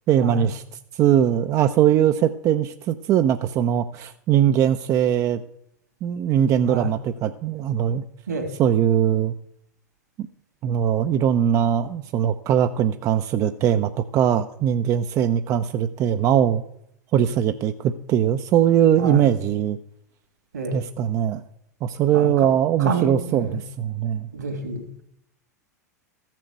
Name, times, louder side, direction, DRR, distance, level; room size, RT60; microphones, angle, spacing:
voice 1, 0.1-0.6 1.0-5.4 6.0-8.0 8.6-9.3 10.6-16.6 17.1-19.8 20.7-21.4 21.8-24.3, right 10 dB, 35° right, 8 dB, 0.6 m, -21 dB
voice 2, 22.1-22.5 22.8-23.5 24.3-25.0, right 3 dB, 80° right, 6 dB, 3.0 m, -28 dB
14.0 x 7.5 x 6.7 m, 0.73 s
figure-of-eight pair, 90°, 9 cm